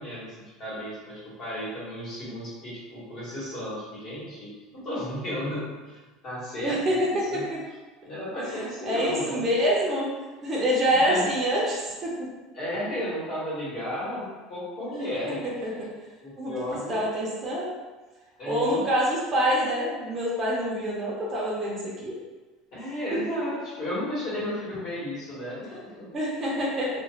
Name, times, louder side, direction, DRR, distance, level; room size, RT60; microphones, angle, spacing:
voice 1, 0.0-4.5 4.8-7.4 8.0-9.3 11.1-11.3 12.5-15.4 16.2-17.0 18.4-18.8 22.7-26.1, left 1 dB, 40° left, -8 dB, 1.3 m, -34 dB
voice 2, 6.6-7.6 8.5-8.6 8.8-10.1 10.4-12.3 14.9-15.1 15.6-15.9 16.4-16.5 16.9-17.7 18.5-22.1 23.1-23.2 26.1-26.9, equal, 25° right, -5 dB, 0.6 m, -26 dB
2.4 x 2.3 x 3.0 m, 1.3 s
supercardioid pair, 140°, 0 cm